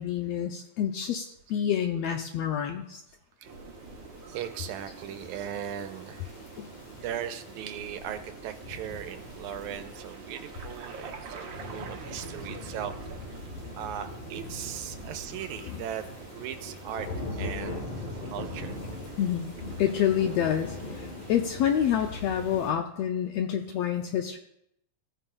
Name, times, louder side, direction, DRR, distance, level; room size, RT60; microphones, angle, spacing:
voice 1, 0.0-3.0 6.6-6.7 15.7-15.8 19.2-19.5 19.8-24.4, left 9 dB, 80° left, 5 dB, 1.5 m, -28 dB
sound 1, 3.4-22.2, right 5 dB, 70° right, 1.1 m, -46 dB
sound 2, 3.5-22.7, left 2 dB, 55° left, 2.7 m, -42 dB
voice 2, 4.3-6.4 6.9-12.9 13.8-17.9 18.3-18.8, right 10 dB, 85° right, 8 dB, 2.0 m, -38 dB
15.5 x 9.0 x 2.3 m, 0.78 s
omnidirectional pair, 3.4 m